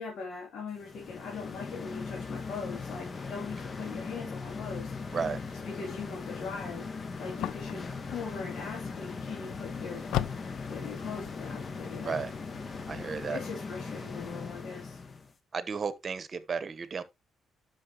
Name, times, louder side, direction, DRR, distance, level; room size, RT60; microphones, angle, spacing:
voice 1, 0.0-5.2 5.6-6.9 7.2-10.1 10.7-12.2 12.7-12.9 13.3-15.0, left 5 dB, 70° left, 3.2 m, -41 dB
sound 1, 0.8-15.3, left 4 dB, 35° left, 1.4 m, -39 dB
sound 2, 4.7-13.3, left 12 dB, 90° left, 0.5 m, -41 dB
voice 2, 12.9-13.4 15.5-17.0, right 5 dB, 40° right, 1.2 m, -33 dB
11.0 x 6.3 x 3.0 m
cardioid pair, 90°, 0 cm